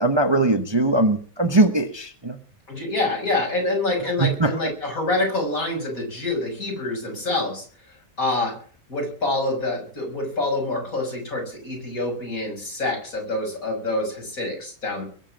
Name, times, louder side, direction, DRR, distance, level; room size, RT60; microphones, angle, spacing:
voice 1, 0.0-2.4 4.2-4.6, right 2 dB, 20° right, 8 dB, 1.0 m, -20 dB
voice 2, 2.7-7.6 8.2-8.6 8.9-15.1, left 2 dB, 60° left, 1 dB, 6.7 m, -26 dB
22.0 x 7.5 x 7.3 m, 0.43 s
omnidirectional pair, 1.6 m